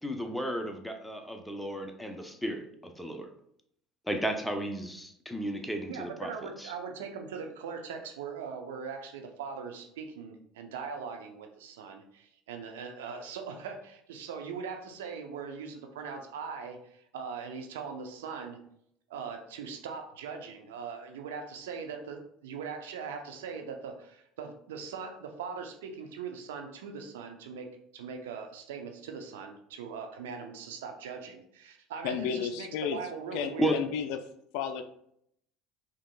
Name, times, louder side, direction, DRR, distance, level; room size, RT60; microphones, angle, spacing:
voice 1, 0.0-3.3 4.1-6.3 6.6-6.7 33.6-33.8, equal, 5° left, 4 dB, 0.7 m, -33 dB
voice 2, 5.9-18.6 19.1-33.8, right 6 dB, 75° right, 4 dB, 0.6 m, -40 dB
voice 3, 32.0-33.0 33.3-34.2 34.5-34.8, left 8 dB, 65° left, 9 dB, 0.4 m, -32 dB
5.1 x 2.9 x 2.2 m, 0.70 s
hypercardioid pair, 70°, 0 cm